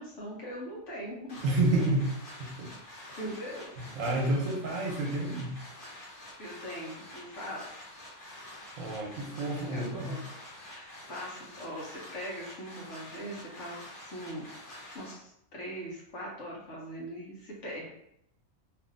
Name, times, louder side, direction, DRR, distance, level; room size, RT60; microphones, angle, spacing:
voice 1, 0.0-1.4 3.2-3.7 6.4-7.8 9.6-10.2 10.6-14.5 14.9-17.9, equal, 65° left, -3 dB, 1.1 m, -41 dB
sound 1, 1.3-15.1, left 1 dB, 45° left, 0.9 m, -48 dB
voice 2, 1.4-2.1 2.4-2.7 3.1-3.2 3.9-5.6 8.8-10.2, right 2 dB, 75° right, -1 dB, 1.2 m, -29 dB
2.8 x 2.5 x 2.5 m, 0.76 s
omnidirectional pair, 1.4 m